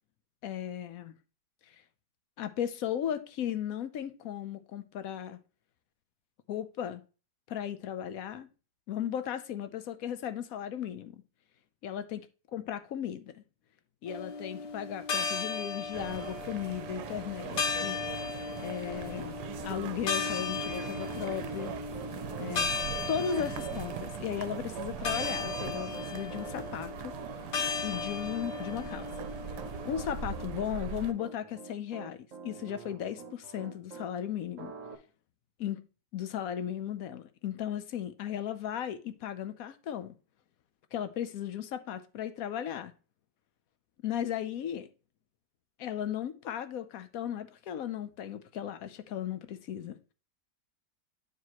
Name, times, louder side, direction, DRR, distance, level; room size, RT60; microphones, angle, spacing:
voice 1, 0.4-1.1 2.4-5.4 6.5-7.0 7.5-8.5 8.9-11.2 11.8-12.2 12.5-13.4 14.0-18.0 18.6-19.4 19.6-21.7 22.4-22.8 23.1-27.1 27.8-29.3 29.8-34.7 35.6-35.9 36.1-40.1 40.9-42.9 44.0-44.9 45.8-50.0, left 9 dB, 65° left, 1.0 m, -36 dB
sound 1, 14.1-30.5, left 5 dB, 90° left, 1.8 m, -37 dB
sound 2, 15.9-31.1, right 9 dB, 80° right, 1.2 m, -41 dB
Piano, 18.9-34.1 34.6-35.0, right 5 dB, 55° right, 1.1 m, -47 dB
9.5 x 4.6 x 2.9 m
omnidirectional pair, 1.8 m